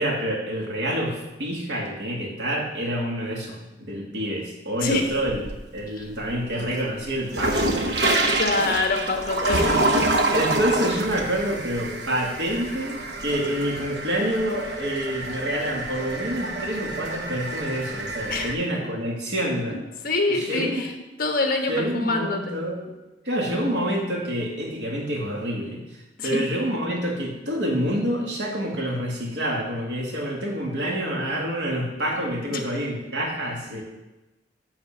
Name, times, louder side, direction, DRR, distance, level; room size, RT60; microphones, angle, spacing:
voice 1, 0.0-5.4 5.7-7.8 9.6-9.8 10.3-19.8 20.3-20.9 21.7-23.0 23.2-25.8 26.2-33.8, equal, 85° right, -1 dB, 2.3 m, -27 dB
sound 1, 4.8-5.8 6.2-18.5, right 2 dB, 70° right, 1.0 m, -27 dB
voice 2, 8.1-9.7 10.3-10.4 18.3-18.6 20.0-20.9 21.2-22.5 26.2-26.4 32.5-32.6 33.7-33.8, left 3 dB, 55° left, 4 dB, 1.3 m, -25 dB
9.7 x 4.3 x 7.3 m, 1.0 s
head